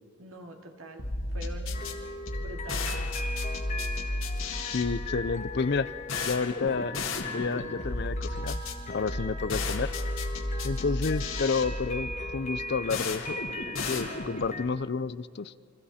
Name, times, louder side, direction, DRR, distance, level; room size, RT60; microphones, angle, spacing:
voice 1, 0.2-2.0 2.4-3.0 9.2-9.4, right 1 dB, 75° right, 2 dB, 2.4 m, -45 dB
sound 1, 1.0-14.6, left 2 dB, 70° left, 2.0 m, -34 dB
sound 2, 1.7-14.7, left 2 dB, 35° left, 1.3 m, -39 dB
voice 2, 4.7-5.9 6.2-7.0 7.3-8.6 8.9-9.9 10.6-13.4 13.9-15.5, left 4 dB, 50° left, 17 dB, 0.5 m, -30 dB
29.5 x 24.0 x 4.3 m, 2.3 s
head